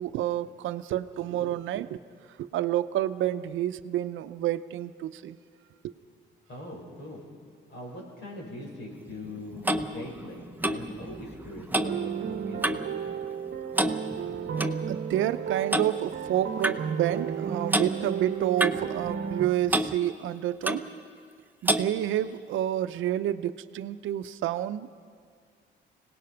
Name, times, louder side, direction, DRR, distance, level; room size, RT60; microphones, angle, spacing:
voice 1, 0.0-2.0 2.4-5.4 5.8-5.9 14.9-20.9 21.6-24.9, right 12 dB, 80° right, 13 dB, 0.7 m, -29 dB
voice 2, 6.5-7.2 7.7-13.1 15.4-15.8 16.4-16.6 16.9-17.0 17.5-18.2, left 2 dB, 60° left, -1 dB, 6.4 m, -43 dB
Clock, 9.1-13.0 13.2-13.5 13.7-14.8 15.7-15.9 16.6-16.8 17.7-17.9 18.6-19.4 19.7-19.9 20.6-20.9 21.7-21.9, right 1 dB, 10° right, 0.8 m, -29 dB
sound 1, 11.8-19.5, right 7 dB, 55° right, 1.0 m, -33 dB
25.5 x 18.0 x 5.8 m, 2.2 s
cardioid pair, 90°, 20 cm